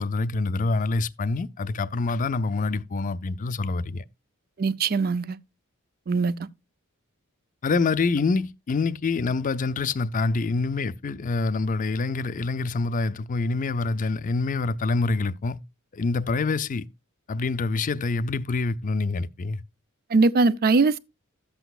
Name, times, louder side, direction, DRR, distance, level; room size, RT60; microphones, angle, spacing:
voice 1, 0.0-4.0 7.6-15.6 15.9-16.9 17.3-19.6, left 3 dB, 35° left, 0.4 m, -26 dB
voice 2, 4.6-5.4 6.1-6.3 20.1-21.0, right 3 dB, 45° right, 0.5 m, -21 dB
12.0 x 8.0 x 2.3 m
head